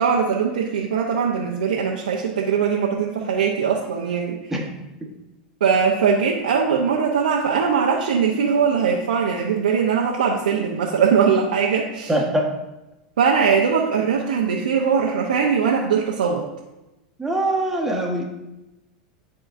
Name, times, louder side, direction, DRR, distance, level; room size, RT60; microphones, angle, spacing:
voice 1, 0.0-4.4 5.6-12.1 13.2-16.5, right 6 dB, 90° right, -2 dB, 0.7 m, -21 dB
voice 2, 12.1-12.5 17.2-18.2, right 1 dB, 5° right, -1 dB, 1.3 m, -22 dB
11.5 x 3.8 x 2.6 m, 1.0 s
hypercardioid pair, 110°, 4 cm